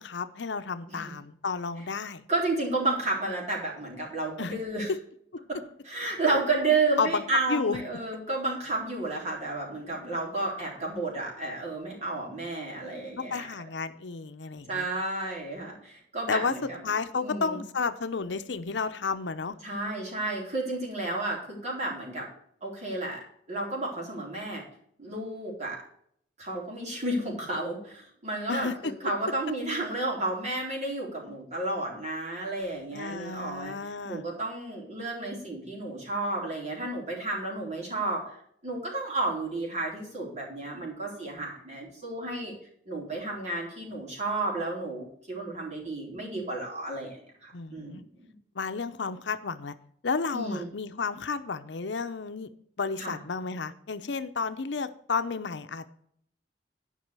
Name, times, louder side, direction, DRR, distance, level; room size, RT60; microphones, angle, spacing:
voice 1, 0.0-2.2 4.4-4.5 4.9-5.0 7.0-7.2 7.5-7.8 13.2-14.9 16.3-16.5 16.8-19.6 28.5-28.9 32.9-34.2 47.5-48.0 48.6-49.7 50.0-52.5 52.8-55.9, left 4 dB, 75° left, 10 dB, 0.7 m, -32 dB
voice 2, 2.3-4.9 5.5-5.6 5.8-13.5 14.7-16.8 17.2-17.6 19.6-22.3 22.6-23.2 23.5-24.6 25.0-25.8 26.4-42.5 42.9-48.3 50.3-50.7 53.0-53.2, right 2 dB, 40° right, -2 dB, 3.9 m, -32 dB
11.0 x 5.4 x 6.7 m, 0.66 s
head